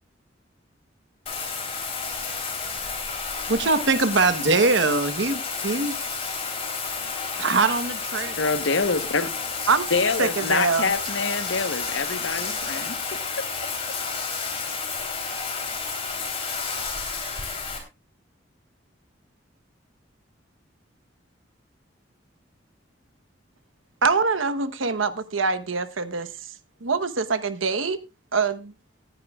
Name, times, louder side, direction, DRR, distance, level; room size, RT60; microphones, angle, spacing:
Bathtub (filling or washing), 1.3-17.8, left 5 dB, 30° left, 3.5 m, -31 dB
voice 1, 3.5-6.0 7.4-8.4, right 3 dB, 65° right, 1.1 m, -22 dB
voice 2, 8.4-9.3 9.9-13.5, left 4 dB, 70° left, 1.1 m, -26 dB
voice 3, 10.2-10.9 24.0-26.3 26.8-28.0 28.3-28.7, right 4 dB, 90° right, 1.1 m, -24 dB
18.5 x 10.5 x 2.4 m
head